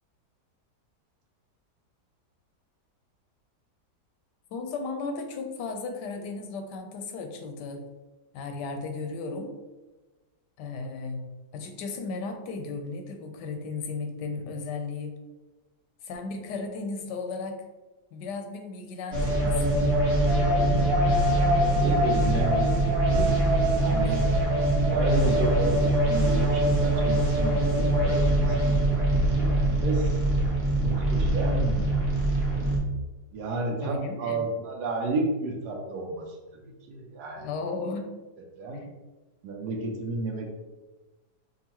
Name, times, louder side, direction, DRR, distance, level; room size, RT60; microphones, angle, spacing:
voice 1, 4.5-7.9 8.3-9.5 10.6-11.2 11.5-15.1 16.0-17.6 18.1-19.8 24.0-24.2 33.8-34.4 37.4-38.1 38.7-38.9, left 4 dB, 85° left, 5 dB, 1.2 m, -35 dB
sound 1, 19.1-32.8, right 1 dB, 45° right, 0.9 m, -23 dB
voice 2, 21.6-23.3 23.7-24.2 24.9-28.7 29.1-30.2 30.8-31.8 33.3-36.3 36.6-37.5 38.6-38.9 39.4-40.6, right 2 dB, 75° right, 1 dB, 1.2 m, -32 dB
5.4 x 2.4 x 2.9 m, 1.2 s
omnidirectional pair, 1.8 m